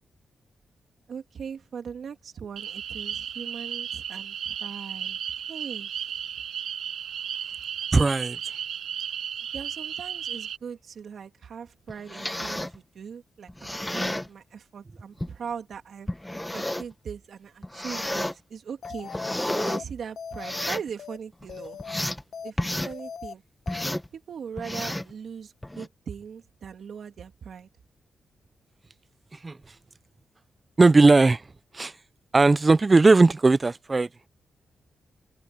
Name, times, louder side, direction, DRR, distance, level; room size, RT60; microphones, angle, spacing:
voice 1, 1.1-5.2 5.5-6.1 9.5-16.1 16.5-19.1 19.5-21.8 22.4-22.6 22.8-23.4 24.1-27.7, right 7 dB, 60° right, 2.7 m, -40 dB
sound 1, 2.6-10.6, right 9 dB, 85° right, 3.0 m, -34 dB
voice 2, 7.9-8.4 29.4-29.6 30.8-31.4 31.7-31.9 32.3-34.1, right 3 dB, 20° right, 0.4 m, -18 dB
sound 2, 11.9-12.8 13.5-14.3 15.2-15.3 16.1-16.9 17.6-18.3 18.8-19.8 20.3-20.9 21.4-22.2 22.6-22.9 23.7-24.1 24.6-25.1 25.6-25.9, left 1 dB, 5° left, 1.3 m, -31 dB
sound 3, 18.8-19.3 19.7-19.8 20.2-20.7 21.0-21.2 21.5-22.0 22.3-22.5 22.8-23.3 23.7-23.8, left 7 dB, 60° left, 1.2 m, -39 dB
open air
wide cardioid pair, 150°, 0 cm